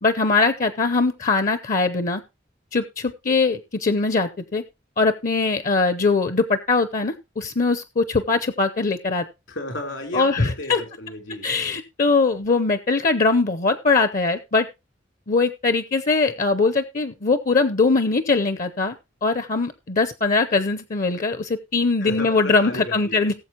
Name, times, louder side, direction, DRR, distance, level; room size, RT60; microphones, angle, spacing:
voice 1, 0.0-2.2 2.7-4.6 5.0-9.3 10.1-10.8 11.4-14.7 15.3-18.9 19.2-23.3, left 3 dB, 45° left, 12 dB, 0.7 m, -21 dB
voice 2, 9.5-11.5 22.0-23.3, left 1 dB, 80° left, 5 dB, 3.4 m, -33 dB
18.5 x 7.4 x 2.9 m, 0.25 s
head